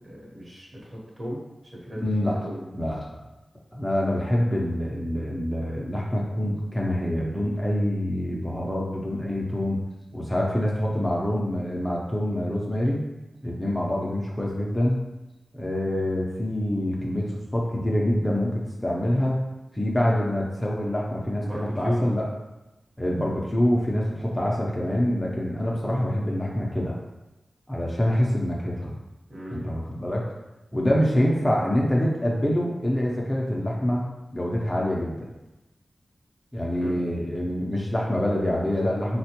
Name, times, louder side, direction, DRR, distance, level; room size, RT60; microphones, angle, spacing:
voice 1, 0.0-1.4 1.7-2.1 2.4-2.7 21.4-22.0 29.3-29.7 36.8-37.0, equal, 40° right, -4 dB, 1.0 m, -35 dB
voice 2, 2.0-2.4 2.7-3.2 3.7-9.8 10.1-13.0 13.4-15.0 15.5-19.4 19.7-22.2 23.0-27.0 27.7-28.9 29.5-30.3 30.7-35.3 36.5-39.2, left 1 dB, 15° left, -3 dB, 0.5 m, -26 dB
3.8 x 2.2 x 2.8 m, 1.0 s
wide cardioid pair, 85°, 0 cm